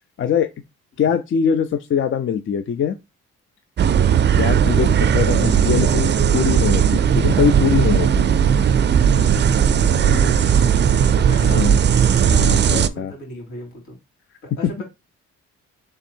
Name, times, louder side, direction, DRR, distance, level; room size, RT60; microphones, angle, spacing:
voice 1, 0.2-0.5 1.0-3.0 4.4-8.3 11.4-11.8 12.3-13.1, left 7 dB, 45° left, 0.5 m, -22 dB
sound 1, 3.8-12.9, right 8 dB, 35° right, 0.4 m, -16 dB
voice 2, 10.0-10.7 11.3-11.6 12.6-14.0 14.4-14.8, left 1 dB, 75° left, 2.9 m, -36 dB
3.6 x 3.3 x 4.4 m
cardioid pair, 90°, 30 cm